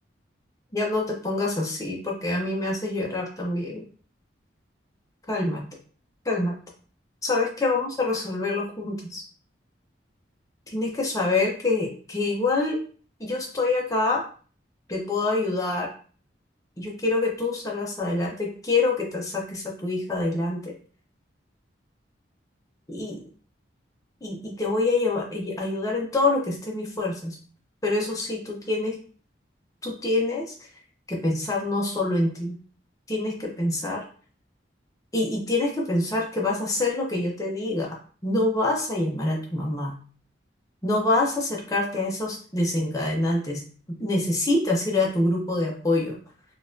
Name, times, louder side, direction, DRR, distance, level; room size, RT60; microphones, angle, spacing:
voice 1, 0.7-3.8 5.3-5.6 6.2-6.5 7.2-9.2 10.7-12.8 13.2-14.2 14.9-15.9 16.8-20.7 22.9-23.2 24.2-27.4 27.8-29.0 29.8-30.5 31.1-32.5 33.1-34.0 35.1-38.0 38.2-39.9 40.8-43.6 43.9-46.2, left 2 dB, 20° left, -2 dB, 0.7 m, -26 dB
3.8 x 2.4 x 2.6 m, 0.42 s
head